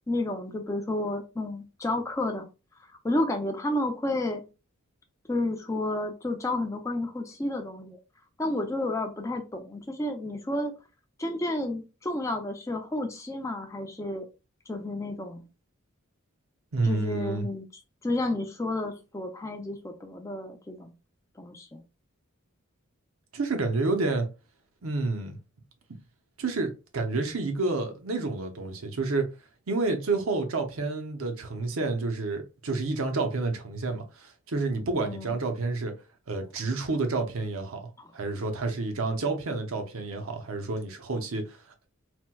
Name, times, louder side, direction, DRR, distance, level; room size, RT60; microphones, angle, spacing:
voice 1, 0.1-2.5 3.0-4.4 5.3-8.0 8.4-10.7 11.2-14.3 14.7-15.4 16.8-17.6 18.0-20.9 21.4-21.8 35.0-35.4 38.0-38.1, left 1 dB, 15° left, 0.4 m, -31 dB
voice 2, 16.7-17.5 23.3-24.3 24.8-25.4 26.4-29.3 29.7-35.9 36.3-41.9, right 3 dB, 70° right, 0.7 m, -29 dB
4.3 x 2.1 x 2.2 m
head